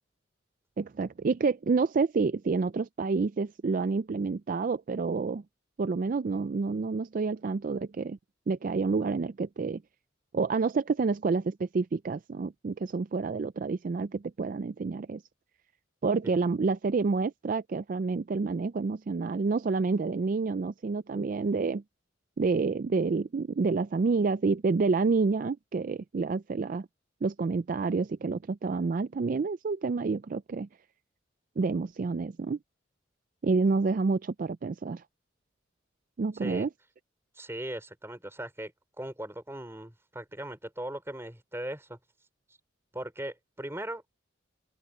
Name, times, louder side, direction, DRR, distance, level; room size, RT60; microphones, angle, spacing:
voice 1, 0.8-5.4 5.8-8.2 8.5-9.8 10.3-15.2 16.0-21.8 22.4-26.9 27.2-30.7 31.6-32.6 33.4-35.0 36.2-36.7, right 4 dB, 45° right, 0.4 m, -28 dB
voice 2, 37.4-42.0 42.9-44.0, right 1 dB, 15° right, 4.0 m, -38 dB
open air
head